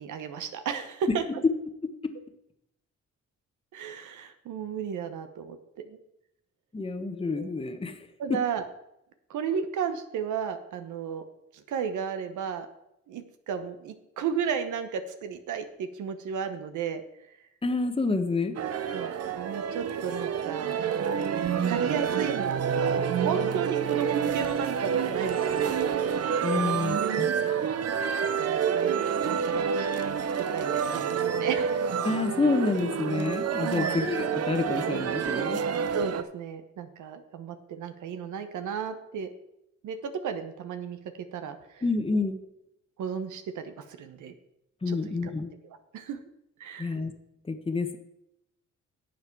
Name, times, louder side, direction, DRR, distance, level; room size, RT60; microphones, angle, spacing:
voice 1, 0.0-1.2 3.7-5.6 5.9-6.0 7.3-7.5 8.2-8.7 9.3-11.2 11.5-12.7 13.1-17.0 18.9-26.0 26.5-26.7 27.0-27.5 28.4-28.9 29.2-31.8 33.6-34.0 35.9-39.3 39.8-41.0 41.3-41.8 43.0-44.3 44.9-45.3 45.6-46.2 46.6-47.0, right 7 dB, 75° right, 8 dB, 1.1 m, -34 dB
voice 2, 1.8-2.1 6.7-8.4 17.6-18.5 26.4-27.3 32.0-35.6 41.8-42.4 44.8-45.5 46.8-47.1 47.5-48.0, left 3 dB, 20° left, 7 dB, 1.1 m, -28 dB
sound 1, 18.5-36.2, right 7 dB, 55° right, 0.8 m, -28 dB
11.5 x 7.7 x 4.6 m, 0.82 s
cardioid pair, 90°, 30 cm